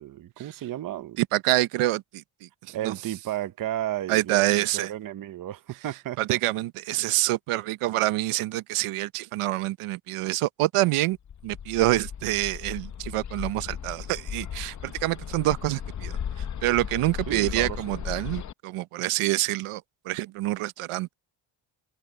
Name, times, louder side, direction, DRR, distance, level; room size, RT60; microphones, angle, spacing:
voice 1, 0.0-1.2 2.7-6.4 17.3-18.0, right 12 dB, 40° right, 0.7 m, -33 dB
voice 2, 1.2-2.9 4.1-4.9 6.2-11.2 11.4-16.1 16.6-21.1, right 17 dB, 85° right, 0.8 m, -26 dB
Bird, 11.2-18.5, left 8 dB, 35° left, 0.8 m, -36 dB
cardioid pair, 145°, 50 cm